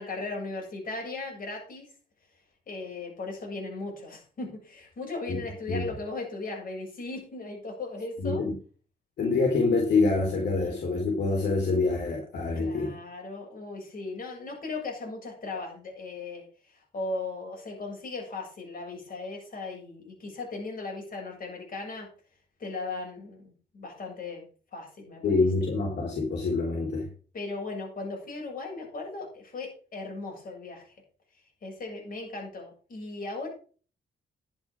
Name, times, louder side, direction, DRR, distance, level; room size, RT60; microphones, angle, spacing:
voice 1, 0.0-1.9 2.7-8.4 12.6-22.1 22.6-24.5 24.7-25.5 27.3-30.9 31.6-33.5, left 3 dB, 50° left, 1 dB, 7.4 m, -37 dB
voice 2, 8.2-8.5 9.2-12.9 25.2-27.1, left 3 dB, 70° left, 0 dB, 3.8 m, -26 dB
11.0 x 7.4 x 6.1 m, 0.40 s
cardioid pair, 100°, 18 cm